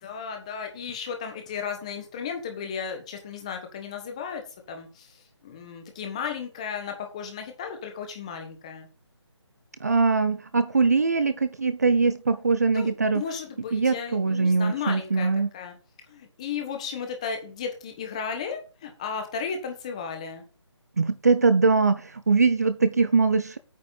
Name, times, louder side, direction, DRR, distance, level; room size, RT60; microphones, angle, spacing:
voice 1, 0.0-8.9 12.7-12.9 13.1-15.3 15.5-15.8 16.1-20.4, left 6 dB, 15° left, 4 dB, 1.4 m, -34 dB
voice 2, 9.8-13.2 13.7-15.5 21.0-23.6, right 4 dB, 35° right, 12 dB, 0.7 m, -22 dB
9.1 x 5.1 x 7.8 m, 0.33 s
hypercardioid pair, 175°, 15 cm